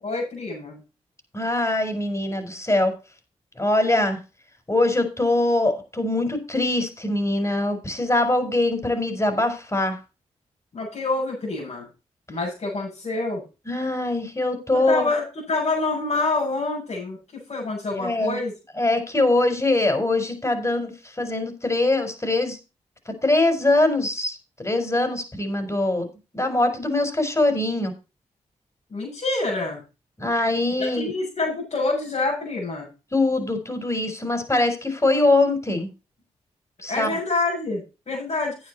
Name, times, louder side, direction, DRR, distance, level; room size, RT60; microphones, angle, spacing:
voice 1, 0.0-0.8 10.7-11.9 12.3-13.4 14.7-18.5 28.9-29.8 30.8-32.9 36.9-38.7, left 3 dB, 55° left, -5 dB, 7.2 m, -27 dB
voice 2, 1.3-2.9 3.6-4.2 4.7-10.0 13.7-15.1 18.0-18.4 18.8-20.9 21.2-22.6 23.1-26.1 26.3-27.9 30.2-31.1 33.1-35.9 36.8-37.2, left 2 dB, 25° left, 7 dB, 4.6 m, -22 dB
10.0 x 9.5 x 4.2 m, 0.30 s
supercardioid pair, 50°, 13 cm